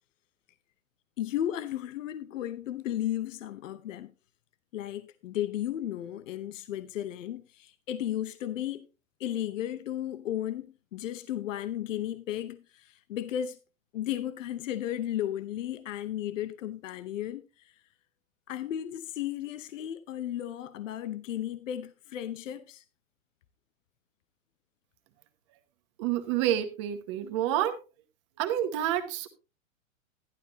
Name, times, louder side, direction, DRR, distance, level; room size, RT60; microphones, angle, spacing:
voice 1, 1.2-4.1 4.7-8.9 9.2-13.6 13.9-17.7 18.5-22.8, left 11 dB, 65° left, 0.8 m, -34 dB
voice 2, 26.0-27.8 28.4-29.3, right 11 dB, 20° right, 0.8 m, -28 dB
11.5 x 11.5 x 2.9 m
supercardioid pair, 175°, 41 cm